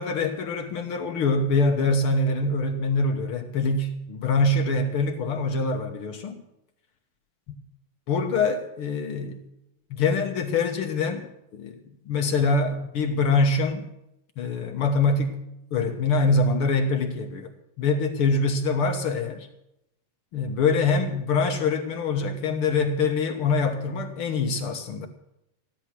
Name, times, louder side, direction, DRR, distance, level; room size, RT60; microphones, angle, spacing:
voice 1, 0.0-6.4 8.1-9.4 9.9-11.2 11.5-11.7 12.1-13.8 14.4-15.4 15.7-17.5 17.8-19.5 20.3-25.1, left 3 dB, 60° left, 5 dB, 1.5 m, -24 dB
15.5 x 11.5 x 6.1 m, 0.85 s
omnidirectional pair, 3.9 m